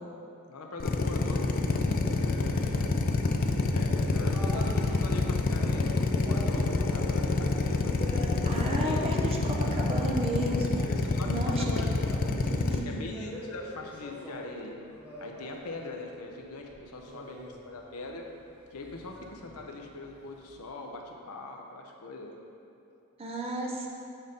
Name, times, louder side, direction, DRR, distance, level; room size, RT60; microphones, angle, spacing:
voice 1, 0.5-1.5 2.0-3.0 3.7-8.0 8.4-9.1 9.6-9.7 10.8-11.9 12.9-14.8 15.2-18.2 18.7-22.3, left 2 dB, 80° left, 2 dB, 0.6 m, -42 dB
Drill, 0.8-12.8, left 3 dB, 40° left, 0.3 m, -27 dB
sound 1, 4.1-15.9 16.2-20.6, equal, 10° right, 1.1 m, -44 dB
voice 2, 8.4-11.7 12.3-13.0 23.2-23.9, right 1 dB, 25° right, -1 dB, 0.5 m, -33 dB
7.1 x 2.7 x 5.1 m, 2.7 s
head